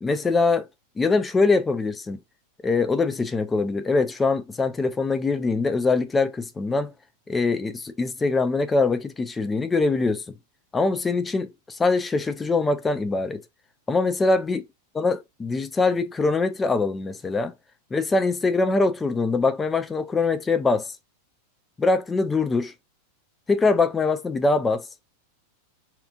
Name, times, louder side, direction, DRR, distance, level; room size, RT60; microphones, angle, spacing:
voice 1, 0.0-0.7 1.0-2.2 2.6-6.9 7.3-10.3 10.7-13.4 13.9-14.6 15.0-17.5 17.9-20.9 21.8-22.7 23.5-24.9, left 3 dB, 15° left, 0.4 m, -23 dB
2.8 x 2.4 x 2.4 m
figure-of-eight pair, 90°, 0 cm